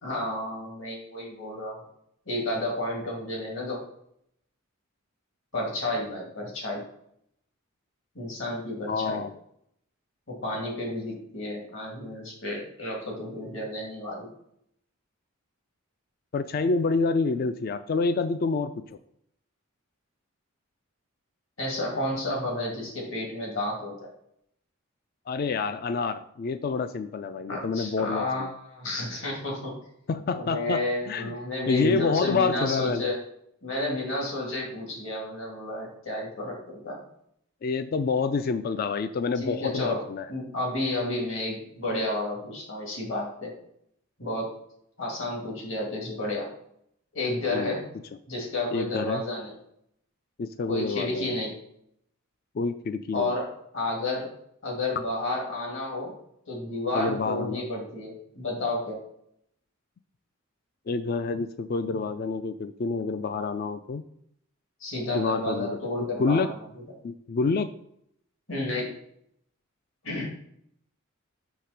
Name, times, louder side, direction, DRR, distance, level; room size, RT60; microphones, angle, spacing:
voice 1, 0.0-1.8 2.3-3.8 5.5-6.8 8.1-9.2 10.3-14.3 21.6-24.1 27.5-29.7 30.4-33.2 33.6-37.0 39.4-40.0 40.3-43.5 44.2-44.5 45.0-46.5 47.1-47.8 48.3-49.5 50.7-51.5 53.1-53.5 53.7-54.3 54.6-56.1 56.5-59.0 64.8-66.5 68.5-68.9 70.0-70.3, left 1 dB, 65° left, -2 dB, 2.3 m, -31 dB
voice 2, 8.9-9.3 16.3-18.7 25.3-28.5 30.1-31.3 31.7-33.1 37.6-40.3 47.5-47.8 48.7-49.2 50.4-51.4 52.5-53.3 56.9-57.6 60.9-64.0 65.1-66.6 67.0-67.7, left 4 dB, 45° left, 11 dB, 0.3 m, -28 dB
6.6 x 3.3 x 5.8 m, 0.72 s
head